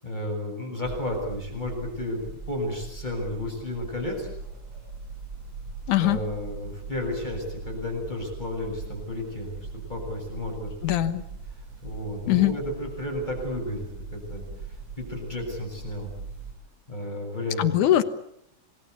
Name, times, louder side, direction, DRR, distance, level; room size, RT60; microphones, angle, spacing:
voice 1, 0.0-4.3 6.0-10.7 11.8-14.4 15.0-16.1 16.9-17.7, left 1 dB, 15° left, 1 dB, 7.5 m, -32 dB
sound 1, 0.8-16.5, right 4 dB, 60° right, 7.4 m, -40 dB
voice 2, 5.9-6.2 10.8-11.2 12.3-12.5 17.6-18.0, left 13 dB, 90° left, 12 dB, 2.8 m, -21 dB
27.5 x 21.5 x 8.4 m, 0.75 s
omnidirectional pair, 3.4 m